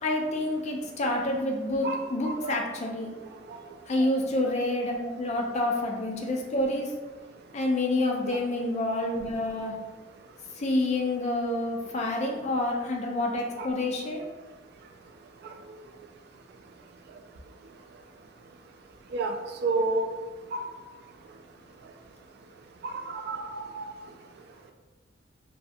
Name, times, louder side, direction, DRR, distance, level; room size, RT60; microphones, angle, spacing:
voice 1, 0.0-3.1 3.9-6.9 7.5-9.7 10.6-14.2, left 1 dB, 35° left, 0 dB, 0.4 m, -28 dB
voice 2, 1.8-2.6 3.5-3.6 4.0-4.1 8.3-8.4 13.6-13.7 19.1-20.0 20.5-20.6 22.8-23.9, right 3 dB, 55° right, 4 dB, 0.3 m, -31 dB
2.6 x 2.5 x 2.3 m, 1.3 s
head